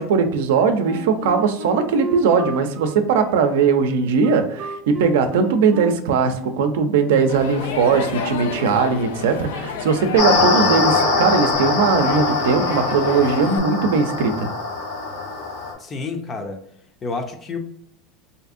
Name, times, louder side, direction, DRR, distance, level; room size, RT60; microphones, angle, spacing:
voice 1, 0.0-14.5, right 5 dB, 85° right, 7 dB, 0.5 m, -19 dB
Wind instrument woodwind instrument, 0.8-6.7, right 2 dB, 35° right, 0.7 m, -33 dB
Crowd, 7.3-13.6, left 5 dB, 90° left, 0.4 m, -31 dB
sound 1, 10.2-15.7, left 3 dB, 70° left, 0.9 m, -22 dB
voice 2, 15.8-16.6 17.0-17.6, left 4 dB, 25° left, 7 dB, 0.5 m, -29 dB
3.5 x 2.7 x 2.5 m, 0.71 s
supercardioid pair, 135°, 0 cm